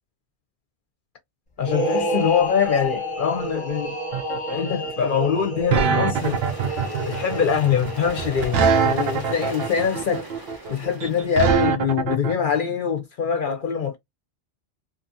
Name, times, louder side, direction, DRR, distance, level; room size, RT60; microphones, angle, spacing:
voice 1, 1.6-4.0 4.5-6.4 7.1-10.3 10.7-14.0, left 7 dB, 55° left, 0.7 m, -23 dB
sound 1, 1.6-10.2, right 1 dB, 30° left, 0.9 m, -31 dB
sound 2, 4.1-12.3, right 6 dB, 65° right, 0.8 m, -23 dB
sound 3, 6.1-11.5, right 2 dB, 25° right, 0.7 m, -39 dB
2.7 x 2.6 x 2.5 m
omnidirectional pair, 1.1 m